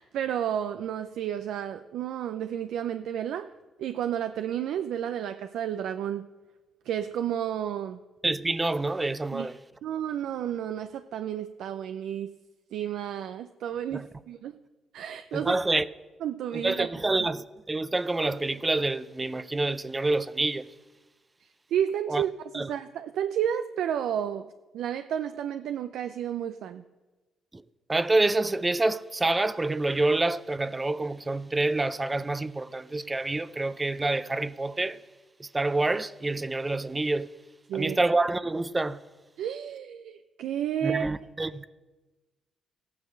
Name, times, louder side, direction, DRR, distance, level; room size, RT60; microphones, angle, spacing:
voice 1, 0.0-3.5 3.8-6.2 6.9-8.0 9.3-9.5 9.8-12.3 12.7-14.6 14.9-15.6 16.2-16.9 17.2-17.3 21.4-24.5 24.7-26.8 37.7-38.0 39.4-41.1, right 9 dB, 80° right, 0.4 m, -31 dB
voice 2, 8.2-9.5 13.9-14.1 15.3-15.8 16.5-20.6 22.1-22.2 22.5-22.7 27.9-35.0 35.4-37.3 37.7-39.0 40.8-41.6, right 2 dB, 20° right, 0.5 m, -27 dB
14.5 x 9.5 x 6.5 m
cardioid pair, 90°, 0 cm